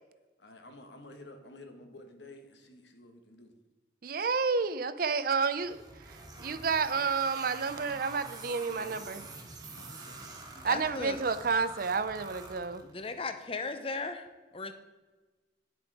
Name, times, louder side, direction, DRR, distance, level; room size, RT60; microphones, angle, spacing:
voice 1, 0.4-3.5 9.8-10.4, left 2 dB, 80° left, 5 dB, 1.4 m, -51 dB
voice 2, 4.0-5.8 6.4-9.3 10.6-12.8, right 5 dB, 55° right, 13 dB, 0.5 m, -30 dB
sound 1, 5.6-13.1, right 2 dB, 20° right, 1.5 m, -46 dB
voice 3, 10.6-11.2 12.8-14.3 14.5-14.7, left 3 dB, 30° left, 9 dB, 0.7 m, -37 dB
10.0 x 6.9 x 4.9 m, 1.2 s
head